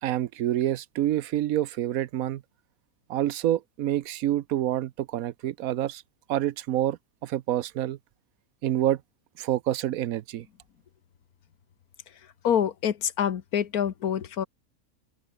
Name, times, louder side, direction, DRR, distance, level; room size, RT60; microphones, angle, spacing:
voice 1, 0.0-2.4 3.1-6.0 6.3-8.0 8.6-9.0 9.4-10.5, right 13 dB, 75° right, 1.1 m, -27 dB
voice 2, 12.4-14.5, left 8 dB, 85° left, 1.7 m, -26 dB
open air
omnidirectional pair, 1.5 m